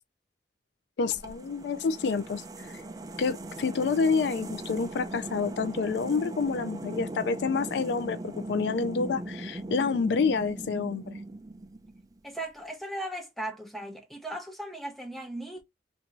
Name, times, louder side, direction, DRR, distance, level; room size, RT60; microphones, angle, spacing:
voice 1, 1.0-2.4 3.2-11.1, left 5 dB, 75° left, 0.4 m, -28 dB
sound 1, 1.1-12.2, right 2 dB, 20° right, 0.5 m, -39 dB
voice 2, 12.2-15.6, right 1 dB, ahead, 0.8 m, -37 dB
3.4 x 2.6 x 2.9 m
head